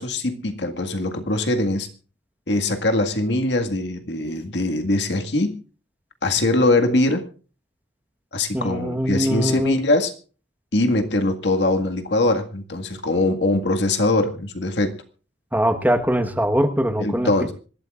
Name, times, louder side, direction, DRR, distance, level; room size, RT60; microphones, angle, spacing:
voice 1, 0.0-1.9 2.5-5.6 6.2-7.3 8.3-10.1 10.7-15.0 17.0-17.5, left 2 dB, 75° left, 6 dB, 1.9 m, -22 dB
voice 2, 8.5-9.8 15.5-17.5, equal, 10° right, 6 dB, 1.3 m, -22 dB
25.5 x 12.5 x 2.5 m, 0.37 s
head